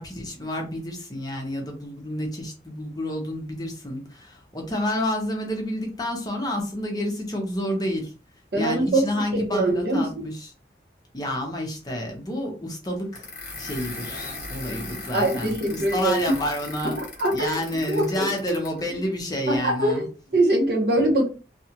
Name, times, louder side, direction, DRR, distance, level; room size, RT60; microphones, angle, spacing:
voice 1, 0.0-8.1 8.5-10.5 11.1-17.0 17.3-20.0, left 1 dB, 20° left, 2 dB, 0.6 m, -29 dB
voice 2, 8.5-10.1 15.1-16.2 16.8-16.9 17.2-17.6 17.9-18.3 19.5-21.3, right 1 dB, 60° right, -1 dB, 1.0 m, -23 dB
sound 1, 13.1-18.8, left 3 dB, 45° left, 1.0 m, -38 dB
2.8 x 2.3 x 2.8 m, 0.33 s
head